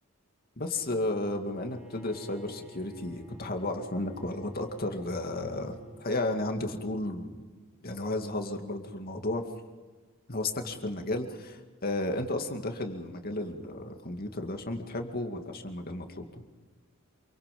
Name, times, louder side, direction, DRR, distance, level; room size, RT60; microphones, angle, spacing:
voice 1, 0.6-7.4 7.8-9.5 10.3-16.3, left 2 dB, 45° left, 4 dB, 2.3 m, -33 dB
Bowed string instrument, 1.4-6.2, right 1 dB, 5° right, 4.7 m, -50 dB
28.0 x 24.5 x 5.4 m, 1.4 s
head